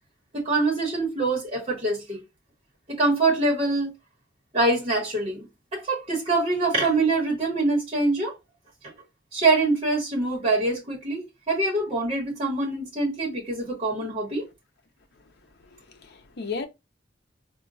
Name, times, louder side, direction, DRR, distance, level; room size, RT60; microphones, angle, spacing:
voice 1, 0.3-2.2 2.9-3.9 4.5-8.3 9.3-14.4, right 2 dB, 30° right, 1.1 m, -24 dB
voice 2, 15.7-16.7, left 5 dB, 60° left, 0.6 m, -34 dB
4.3 x 2.3 x 2.5 m
head